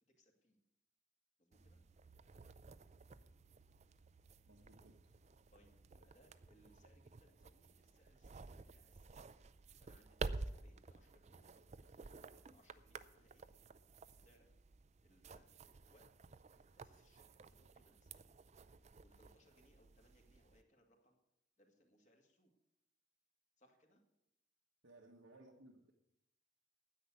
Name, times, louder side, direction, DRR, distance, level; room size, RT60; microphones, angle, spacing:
voice 1, 0.2-0.6 1.4-1.8 5.5-9.2 9.8-12.0 12.5-13.5 14.1-14.5 15.0-15.6 15.9-16.3 16.7-18.3 19.0-21.2 21.6-22.5 23.6-24.0, equal, 40° left, 2 dB, 2.3 m, -72 dB
sound 1, 1.5-20.6, right 3 dB, 35° right, 0.5 m, -52 dB
voice 2, 4.5-5.0 24.8-25.9, right 2 dB, 90° right, 1 dB, 1.3 m, -61 dB
9.9 x 8.4 x 9.4 m, 0.84 s
head